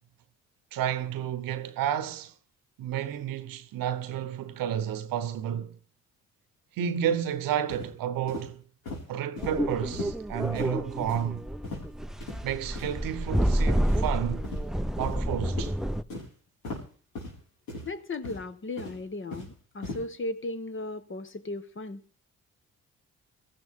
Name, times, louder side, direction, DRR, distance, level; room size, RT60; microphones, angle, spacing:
voice 1, 0.7-2.3 2.8-5.7 6.8-8.6 9.1-11.4 12.4-14.4 15.0-15.7, right 9 dB, 75° right, 1.0 m, -31 dB
sound 1, 7.7-7.9 8.3-8.5 8.9-9.0 9.4-9.5 9.9-10.1 10.5-10.7 11.1-11.3 11.6-11.9 12.2-12.4 12.8-12.9 13.3-13.5 13.9-14.0 14.4-14.6 15.0-15.2 15.6-15.7 16.1-16.3 16.6-16.8 17.2-17.3 17.7-17.9 18.2-18.5 18.8-19.5 19.8-20.0, left 2 dB, 80° left, 5.3 m, -38 dB
sound 2, 9.4-16.0, equal, ahead, 0.6 m, -29 dB
voice 2, 17.8-22.2, left 2 dB, 35° left, 1.3 m, -36 dB
16.5 x 14.0 x 3.7 m
supercardioid pair, 50°, 34 cm